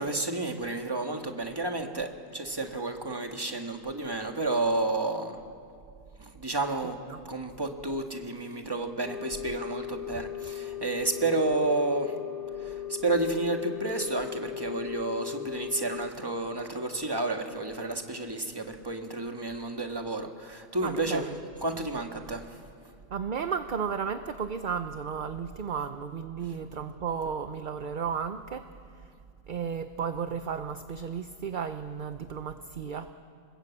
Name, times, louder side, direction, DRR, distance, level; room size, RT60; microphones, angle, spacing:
voice 1, 0.0-5.3 6.2-7.0 7.2-12.1 12.6-21.3 21.6-22.6, right 2 dB, 20° right, 4 dB, 1.7 m, -31 dB
sound 1, 9.0-16.1, left 11 dB, 50° left, 0.9 m, -38 dB
voice 2, 20.8-21.2 23.1-28.7 29.5-33.1, right 6 dB, 45° right, 9 dB, 0.8 m, -33 dB
27.0 x 20.5 x 8.4 m, 2.4 s
omnidirectional pair, 1.3 m